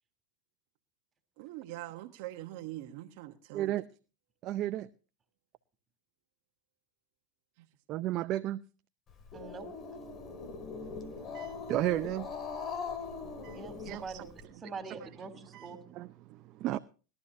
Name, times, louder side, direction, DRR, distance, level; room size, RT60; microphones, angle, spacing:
voice 1, 1.4-3.7 13.9-14.0, right 15 dB, 65° right, 1.2 m, -43 dB
voice 2, 3.5-3.8 4.4-4.9 7.9-8.6 10.8-12.3 13.4-14.2 14.6-15.1 15.5-16.8, right 14 dB, 50° right, 0.6 m, -35 dB
Growling, 9.1-14.4, left 5 dB, 40° left, 2.3 m, -41 dB
voice 3, 9.3-9.7 13.5-15.8, right 4 dB, 25° right, 3.1 m, -44 dB
20.5 x 12.5 x 2.7 m
hypercardioid pair, 100°, 0 cm